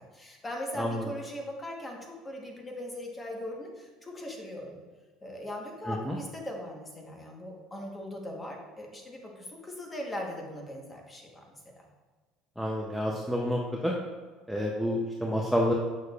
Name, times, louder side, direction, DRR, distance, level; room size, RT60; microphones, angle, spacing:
voice 1, 0.0-4.8 5.2-11.6, left 1 dB, 15° left, 0 dB, 1.1 m, -39 dB
voice 2, 5.9-6.2 12.6-13.9 14.5-15.7, equal, ahead, -2 dB, 0.5 m, -29 dB
6.7 x 6.3 x 2.4 m, 1.4 s
cardioid pair, 135°, 0 cm